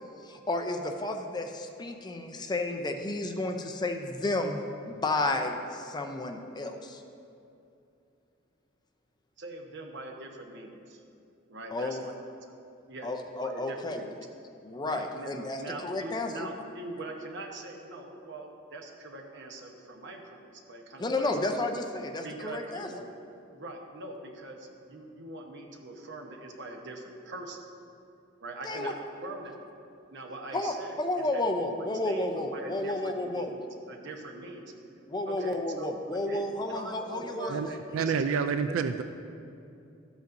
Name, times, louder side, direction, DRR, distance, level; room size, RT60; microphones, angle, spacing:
voice 1, 0.2-7.0 11.7-12.0 13.0-14.0 14.6-16.5 21.0-22.9 28.6-28.9 30.5-33.5 35.1-37.5, left 2 dB, 20° left, 4 dB, 0.5 m, -32 dB
voice 2, 9.4-11.0 11.5-12.1 12.9-13.1 13.4-14.2 14.8-21.6 22.2-23.0 23.5-27.7 28.4-29.6 30.1-34.7 35.3-38.8, right 2 dB, 60° right, 2 dB, 0.9 m, -42 dB
voice 3, 37.9-39.0, right 6 dB, 75° right, 9 dB, 0.3 m, -28 dB
13.0 x 8.1 x 2.6 m, 2.6 s
head